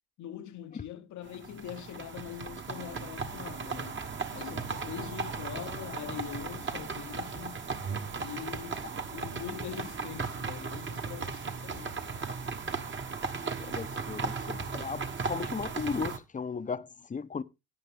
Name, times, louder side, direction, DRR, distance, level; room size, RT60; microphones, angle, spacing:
voice 1, 0.2-4.0 4.3-7.6 8.2-12.1, left 10 dB, 60° left, 1.0 m, -43 dB
sound 1, 1.2-16.2, right 4 dB, 35° right, 1.3 m, -36 dB
voice 2, 13.6-17.4, left 5 dB, 25° left, 0.7 m, -36 dB
12.0 x 9.3 x 3.5 m
cardioid pair, 90°, 33 cm